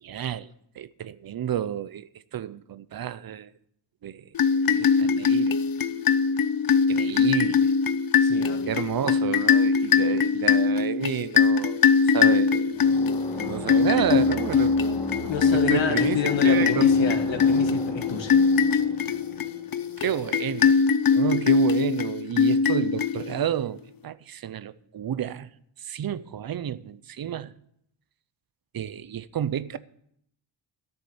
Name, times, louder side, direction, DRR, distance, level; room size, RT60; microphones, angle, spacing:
voice 1, 0.0-3.5 4.0-4.3 4.7-5.6 6.9-7.7 8.7-12.8 13.4-17.2 20.0-20.8 21.1-25.5 25.8-27.5 28.7-29.8, right 9 dB, 50° right, 0.6 m, -31 dB
sound 1, 4.3-23.6, left 5 dB, 50° left, 0.6 m, -22 dB
voice 2, 8.2-8.7 15.3-18.4, left 6 dB, 70° left, 1.6 m, -29 dB
sound 2, 12.7-20.4, left 1 dB, 10° left, 4.7 m, -37 dB
13.0 x 7.1 x 7.9 m
wide cardioid pair, 165°, 46 cm